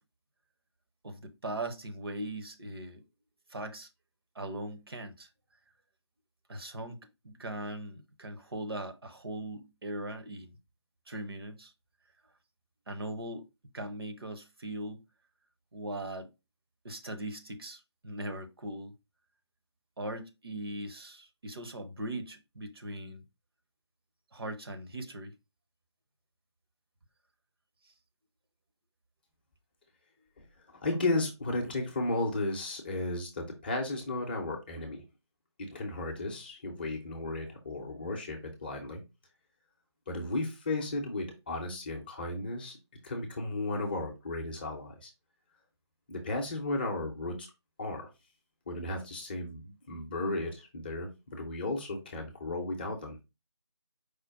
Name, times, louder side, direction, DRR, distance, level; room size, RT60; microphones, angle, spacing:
voice 1, 1.0-3.0 3.5-3.9 4.3-5.3 6.5-7.0 7.2-10.6 11.1-11.7 12.9-13.5 13.7-15.0 15.7-16.3 16.8-18.9 20.0-23.2 24.3-25.3 27.8-27.9, right 1 dB, 55° right, 0.9 m, -40 dB
voice 2, 30.8-35.0 35.6-39.0 40.1-42.8 43.0-45.1 46.1-47.5 47.8-48.1 48.7-53.2, left 2 dB, 20° left, 0.7 m, -34 dB
4.9 x 2.2 x 4.5 m
figure-of-eight pair, 160°, 15 cm